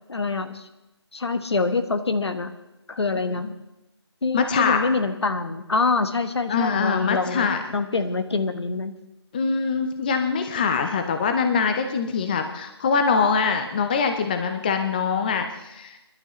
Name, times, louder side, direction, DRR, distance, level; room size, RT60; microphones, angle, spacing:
voice 1, 0.1-0.7 1.1-2.5 2.9-3.5 4.2-8.9, left 3 dB, 70° left, 8 dB, 1.3 m, -25 dB
voice 2, 4.3-4.9 6.5-7.6 9.3-16.0, left 5 dB, 20° left, 6 dB, 0.6 m, -23 dB
26.0 x 11.5 x 3.1 m, 0.96 s
figure-of-eight pair, 160°, 15 cm